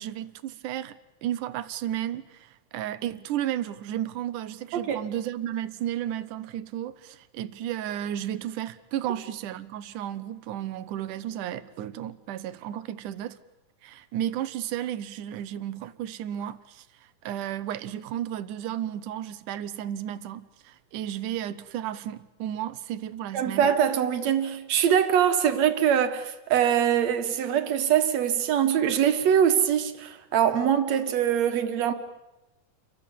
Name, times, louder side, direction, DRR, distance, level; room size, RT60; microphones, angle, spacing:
voice 1, 0.0-13.4 13.8-16.9 17.2-23.7, right 11 dB, 75° right, 2.5 m, -33 dB
voice 2, 23.3-31.9, right 9 dB, 60° right, 2.7 m, -23 dB
29.5 x 24.0 x 7.4 m
omnidirectional pair, 3.8 m